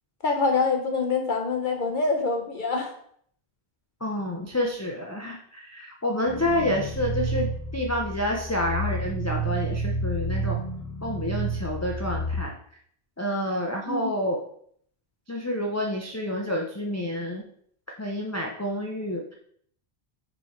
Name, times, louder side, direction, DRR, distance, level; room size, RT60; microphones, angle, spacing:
voice 1, 0.2-2.9 13.9-14.2, left 4 dB, 55° left, 4 dB, 0.8 m, -25 dB
voice 2, 4.0-10.6 11.0-12.5 13.2-14.4 15.3-17.4 18.0-19.2, left 1 dB, 20° left, 0 dB, 0.6 m, -28 dB
sound 1, 6.3-12.4, right 2 dB, 90° left, 1.6 m, -30 dB
5.5 x 4.5 x 4.3 m, 0.64 s
omnidirectional pair, 1.1 m